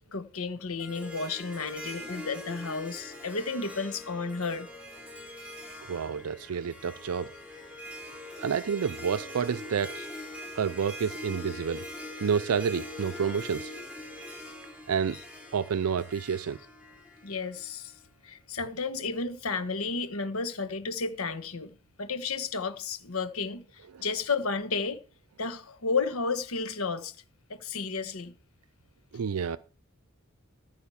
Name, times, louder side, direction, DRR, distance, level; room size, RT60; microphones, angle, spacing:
voice 1, 0.1-4.7 10.0-10.1 15.1-15.2 17.2-17.9 18.2-21.7 22.0-23.7 24.0-25.0 25.4-27.2 27.5-28.3 29.1-29.2, left 4 dB, 75° left, 1.3 m, -32 dB
Harp, 0.8-18.1, left 1 dB, 5° right, 4.2 m, -43 dB
voice 2, 5.9-7.3 8.4-10.0 10.6-11.8 12.2-13.7 14.9-15.2 15.5-16.6 29.1-29.6, right 6 dB, 80° right, 0.4 m, -29 dB
14.5 x 4.9 x 7.0 m
head